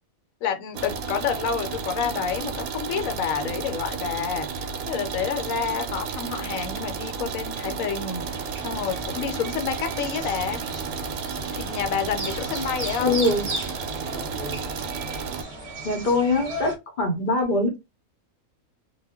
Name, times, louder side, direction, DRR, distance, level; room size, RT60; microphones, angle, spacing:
voice 1, 0.4-10.6 11.5-13.2, left 7 dB, 75° left, 1.0 m, -29 dB
sound 1, 0.7-15.4, right 5 dB, 85° right, 1.0 m, -32 dB
sound 2, 8.2-16.8, right 2 dB, 40° right, 0.6 m, -36 dB
voice 2, 13.0-13.4 15.8-17.8, left 2 dB, 45° left, 0.7 m, -23 dB
2.3 x 2.2 x 3.4 m
omnidirectional pair, 1.5 m